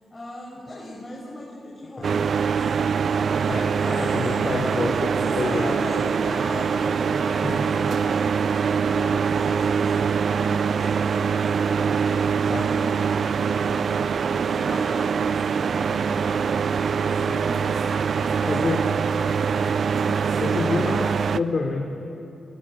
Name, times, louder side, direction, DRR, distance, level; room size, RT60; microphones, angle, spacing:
voice 1, 0.1-14.1 14.4-19.1 20.0-20.9, left 1 dB, 30° left, -2 dB, 5.4 m, -39 dB
sound 1, 2.0-21.4, right 6 dB, 65° right, 0.7 m, -23 dB
voice 2, 3.5-5.7 7.4-7.6 12.5-12.7 17.3-17.4 18.4-18.8 20.4-21.9, left 3 dB, 50° left, 1 dB, 3.1 m, -27 dB
25.5 x 23.5 x 8.8 m, 2.8 s
cardioid pair, 65°, 0 cm